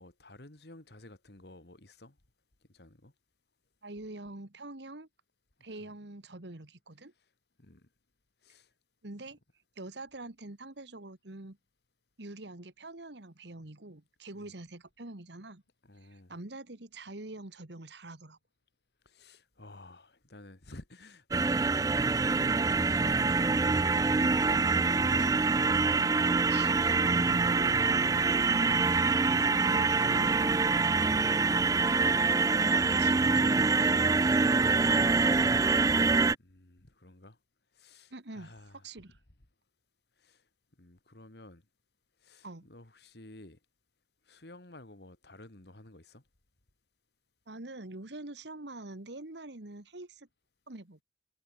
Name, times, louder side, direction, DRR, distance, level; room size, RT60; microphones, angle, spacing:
voice 1, 0.0-2.2 2.7-3.1 5.8-5.9 7.6-7.9 8.4-8.7 14.4-14.5 15.8-16.3 19.1-24.4 24.7-26.5 36.4-37.4 37.7-38.8 40.2-40.4 40.8-41.6 42.2-43.6 44.3-46.2, left 1 dB, 65° left, 2.3 m, -52 dB
voice 2, 3.8-5.1 5.6-7.1 9.0-9.4 9.8-11.6 12.2-15.6 16.1-18.4 25.0-25.4 26.5-31.3 32.8-35.8 38.1-39.2 42.4-42.7 47.5-50.3 50.7-51.0, right 2 dB, 75° right, 1.8 m, -45 dB
sound 1, 21.3-36.4, right 4 dB, 20° right, 0.3 m, -25 dB
head